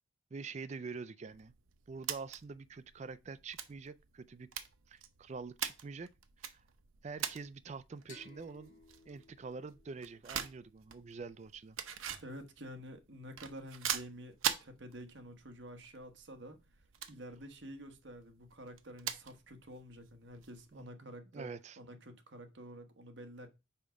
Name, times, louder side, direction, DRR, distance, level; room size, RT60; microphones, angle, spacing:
voice 1, 0.3-1.5 1.9-4.5 4.9-6.1 6.4-6.6 7.0-8.8 9.1-11.8 20.7-20.9 21.3-21.8, right 4 dB, 35° right, 0.3 m, -46 dB
sound 1, 1.3-20.8, right 9 dB, 80° right, 0.7 m, -44 dB
sound 2, 8.1-11.5, left 3 dB, 35° left, 2.0 m, -60 dB
voice 2, 12.2-16.6 17.1-23.5, equal, 60° right, 1.2 m, -49 dB
5.6 x 4.7 x 5.1 m
head